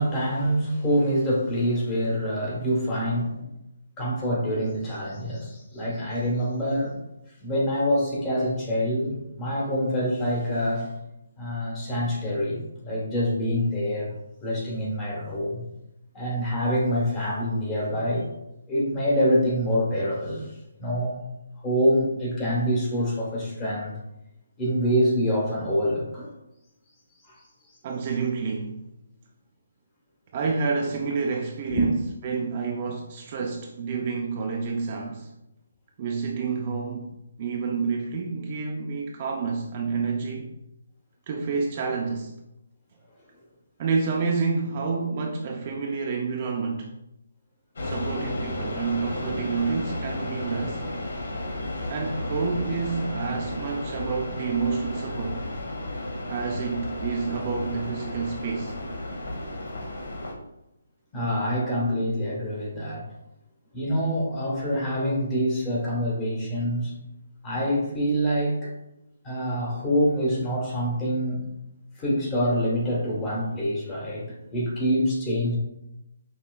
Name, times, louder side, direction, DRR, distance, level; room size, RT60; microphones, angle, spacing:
voice 1, 0.0-3.5 4.0-7.0 7.4-10.9 11.4-14.1 14.4-15.6 16.1-18.3 18.7-21.2 21.6-24.0 24.6-26.3 27.3-27.4 31.7-31.9 61.1-63.1 63.7-66.9 67.4-68.7 69.2-71.5 72.0-75.6, equal, 15° left, -4 dB, 1.2 m, -26 dB
voice 2, 27.8-28.8 30.3-32.0 32.2-35.3 36.0-40.5 41.3-42.3 43.8-46.9 47.8-50.8 51.9-55.5 56.3-58.7, right 5 dB, 35° right, 0 dB, 0.5 m, -29 dB
sound 1, 47.8-60.3, left 1 dB, 70° left, 1.2 m, -33 dB
5.5 x 3.0 x 2.3 m, 0.89 s
hypercardioid pair, 160°, 0 cm